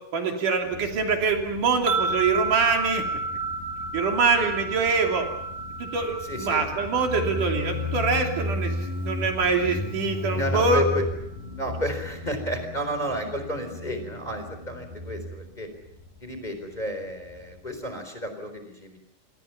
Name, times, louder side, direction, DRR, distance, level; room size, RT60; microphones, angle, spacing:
voice 1, 0.1-3.0 3.9-5.3 5.8-10.8, right 4 dB, 75° right, 2 dB, 4.6 m, -24 dB
Motorcycle, 0.6-17.9, left 2 dB, 85° left, 7.0 m, -35 dB
sound 1, 1.9-11.1, right 3 dB, 55° right, 2.6 m, -33 dB
voice 2, 6.2-6.6 10.3-11.1 11.6-15.7 16.2-19.0, equal, 15° left, 7 dB, 4.1 m, -32 dB
29.0 x 26.0 x 5.9 m, 0.76 s
omnidirectional pair, 3.7 m